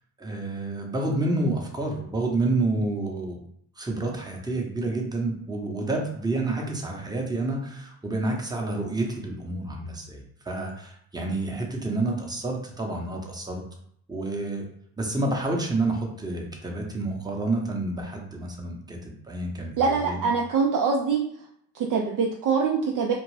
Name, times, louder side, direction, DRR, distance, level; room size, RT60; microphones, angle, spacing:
voice 1, 0.2-3.4 3.8-13.6 14.1-14.6 15.0-20.2, right 2 dB, 10° right, 0 dB, 0.8 m, -29 dB
voice 2, 19.8-21.3 21.7-23.1, right 5 dB, 45° right, 1 dB, 0.5 m, -24 dB
2.5 x 2.4 x 3.2 m, 0.67 s
hypercardioid pair, 65°, 47 cm